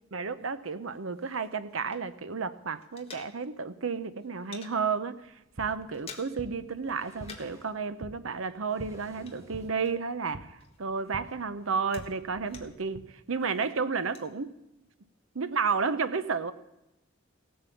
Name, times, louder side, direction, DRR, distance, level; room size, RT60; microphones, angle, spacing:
voice 1, 0.1-5.2 5.6-13.0 13.3-14.5 15.3-16.5, right 5 dB, 80° right, 12 dB, 0.8 m, -32 dB
sound 1, 0.9-2.4 2.6-3.8 4.0-4.8 5.2-5.4 5.7-6.5 6.8-7.7 7.9-10.3 10.6-12.9 13.4-14.3, left 5 dB, 30° left, 1.5 m, -51 dB
sound 2, 5.2-13.0, right 2 dB, 50° right, 0.9 m, -48 dB
sound 3, 6.5-7.8 8.4-9.8 10.8-10.9 11.2-11.3, equal, 15° right, 2.0 m, -55 dB
16.0 x 8.7 x 7.1 m, 0.93 s
head